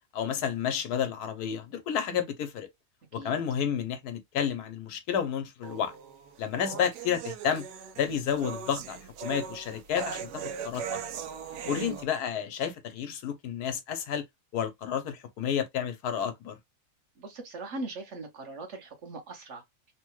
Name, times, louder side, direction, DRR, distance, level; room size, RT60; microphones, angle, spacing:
voice 1, 0.1-2.7 3.1-5.9 6.4-7.6 8.0-11.0 11.7-14.2 14.5-16.6, left 8 dB, 90° left, 1.2 m, -31 dB
sound 1, 5.6-12.0, right 6 dB, 90° right, 1.1 m, -39 dB
voice 2, 11.6-12.0 17.2-19.6, right 3 dB, 55° right, 1.1 m, -40 dB
3.3 x 2.2 x 3.0 m
omnidirectional pair, 1.6 m